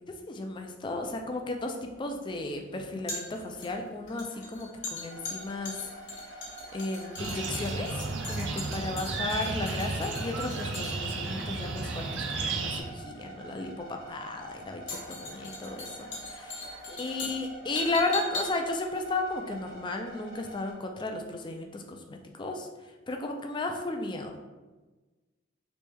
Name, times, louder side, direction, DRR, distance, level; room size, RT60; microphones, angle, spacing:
voice 1, 0.0-5.9 6.7-16.6 17.0-22.7 23.1-24.4, left 2 dB, 25° left, 4 dB, 0.3 m, -34 dB
sound 1, 0.9-20.2 20.5-20.6, left 2 dB, 60° left, 1.2 m, -41 dB
sound 2, 5.1-20.7, right 2 dB, 80° right, 1.4 m, -47 dB
sound 3, 7.2-12.8, right 3 dB, 60° right, 0.5 m, -33 dB
3.1 x 3.1 x 3.4 m, 1.2 s
head